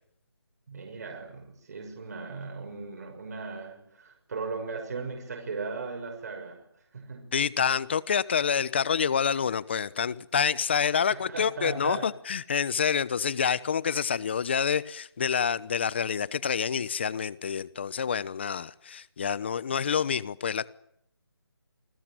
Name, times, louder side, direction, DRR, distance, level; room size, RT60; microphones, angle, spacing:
voice 1, 0.7-6.6 6.9-7.4 11.1-12.1, right 4 dB, 40° right, 6.4 m, -37 dB
voice 2, 7.3-20.7, left 7 dB, 25° left, 1.0 m, -27 dB
28.0 x 20.5 x 9.1 m
figure-of-eight pair, 170°, 13 cm